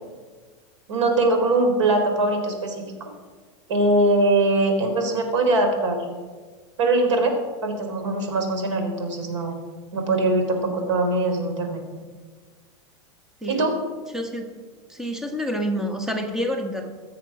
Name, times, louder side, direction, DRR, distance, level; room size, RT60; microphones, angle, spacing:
voice 1, 0.9-2.8 3.7-6.0 6.8-7.3 7.6-9.6 9.9-11.8 13.5-13.7, right 2 dB, 85° right, 4 dB, 3.7 m, -22 dB
voice 2, 14.1-14.5 14.9-16.9, equal, 5° right, 5 dB, 1.2 m, -28 dB
21.0 x 7.6 x 6.0 m, 1.5 s
supercardioid pair, 150°, 15 cm